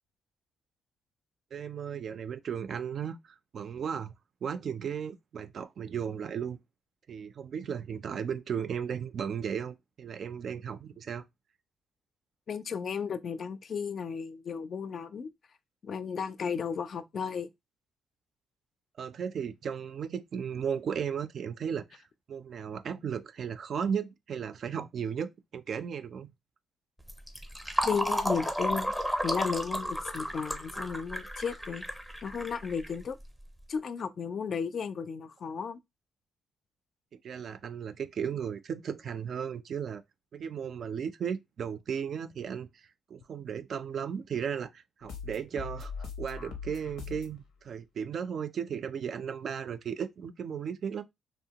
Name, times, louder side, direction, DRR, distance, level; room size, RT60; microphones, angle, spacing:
voice 1, 1.5-4.1 4.4-6.6 7.1-11.2 19.0-26.3 37.1-40.0 40.3-51.0, right 7 dB, 55° right, 0.3 m, -35 dB
voice 2, 12.5-15.3 15.8-17.5 27.8-28.9 29.2-31.8 32.2-33.2 33.7-35.8, left 6 dB, 50° left, 0.3 m, -34 dB
Fill (with liquid), 27.0-33.4, equal, ahead, 0.5 m, -33 dB
sound 1, 45.0-47.4, left 5 dB, 90° left, 0.7 m, -40 dB
2.7 x 2.1 x 2.8 m
cardioid pair, 90°, 0 cm